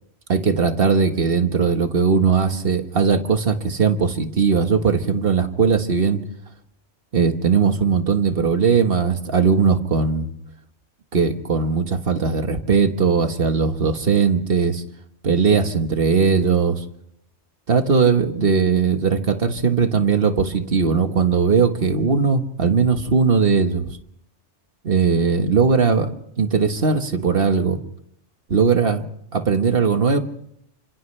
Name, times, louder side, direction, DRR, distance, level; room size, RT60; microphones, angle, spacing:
voice 1, 0.3-6.2 7.1-10.3 11.1-14.8 15.2-16.8 17.7-24.0 24.8-26.1 26.4-27.8 28.5-29.1 29.3-30.2, right 5 dB, 50° right, 7 dB, 1.6 m, -19 dB
30.0 x 26.5 x 3.3 m, 0.75 s
omnidirectional pair, 1.2 m